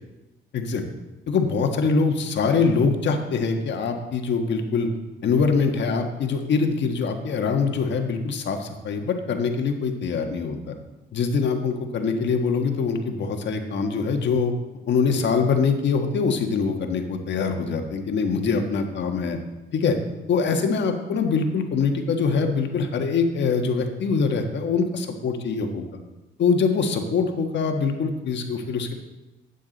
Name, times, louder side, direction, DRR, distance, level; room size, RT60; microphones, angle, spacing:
voice 1, 1.3-4.9 5.2-10.7 11.1-14.5 14.9-19.4 19.7-20.0 20.3-25.8 26.4-28.9, left 5 dB, 65° left, 4 dB, 1.5 m, -23 dB
12.0 x 8.3 x 4.1 m, 1.1 s
cardioid pair, 90°, 20 cm